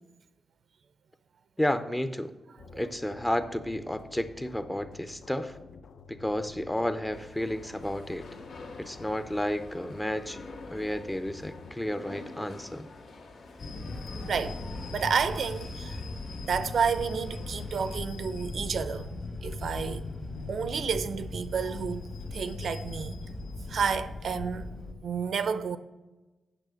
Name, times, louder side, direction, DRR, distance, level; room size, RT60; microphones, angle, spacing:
voice 1, 1.6-2.3 2.8-5.5 6.1-8.2 8.8-10.4 10.7-12.9, left 1 dB, 10° left, 0.5 m, -31 dB
sound 1, 2.6-11.7, left 4 dB, 70° left, 0.5 m, -51 dB
sound 2, 7.1-18.0, left 3 dB, 85° left, 1.7 m, -48 dB
sound 3, 13.6-24.9, left 2 dB, 45° left, 1.4 m, -38 dB
voice 2, 13.9-14.6 14.9-16.0 16.4-19.2 19.4-20.1 20.5-22.1 22.3-23.2 23.7-24.7 25.0-25.8, right 6 dB, 60° right, 0.5 m, -30 dB
9.1 x 6.3 x 6.3 m
wide cardioid pair, 150°, 0 cm